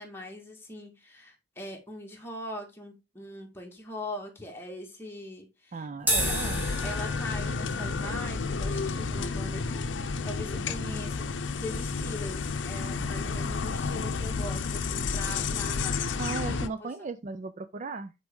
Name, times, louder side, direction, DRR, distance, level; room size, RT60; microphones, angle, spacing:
voice 1, 0.0-5.9 6.2-6.3 6.8-9.9 10.2-16.9, left 1 dB, 15° left, 1.7 m, -41 dB
voice 2, 5.7-6.7 16.2-18.1, right 3 dB, 40° right, 0.4 m, -36 dB
sound 1, 6.0-12.6, right 1 dB, 10° right, 1.7 m, -36 dB
sound 2, 6.2-16.7, left 4 dB, 90° left, 0.6 m, -31 dB
7.8 x 4.1 x 3.6 m
head